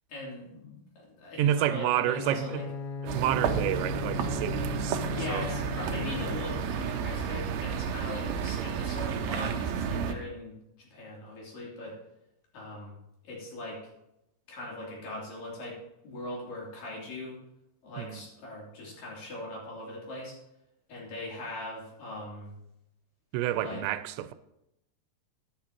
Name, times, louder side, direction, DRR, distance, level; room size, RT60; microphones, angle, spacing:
voice 1, 0.1-2.6 5.0-12.0 12.5-13.0 13.2-13.8 14.5-15.8 16.0-17.4 17.8-20.4 20.9-22.6 23.5-23.8, left 1 dB, 55° left, 4.6 m, -40 dB
voice 2, 1.4-2.6 3.1-5.5 18.0-18.2 23.3-24.3, right 12 dB, 90° right, 2.8 m, -29 dB
Bowed string instrument, 2.0-6.8, left 5 dB, 80° left, 3.1 m, -37 dB
sound 1, 3.1-10.1, right 7 dB, 75° right, 2.5 m, -32 dB
14.5 x 10.0 x 3.0 m
omnidirectional pair, 5.0 m